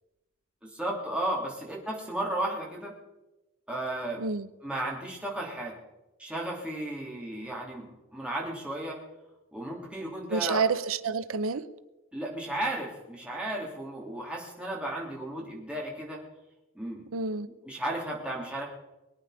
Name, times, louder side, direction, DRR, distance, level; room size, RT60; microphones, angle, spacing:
voice 1, 0.6-2.9 3.7-4.2 4.6-5.8 6.2-9.0 9.5-10.6 12.1-16.2 16.7-17.1 17.6-18.7, right 1 dB, 5° right, 3.3 m, -34 dB
voice 2, 10.3-11.7 17.1-17.5, right 4 dB, 90° right, 0.8 m, -28 dB
22.5 x 9.6 x 5.1 m
head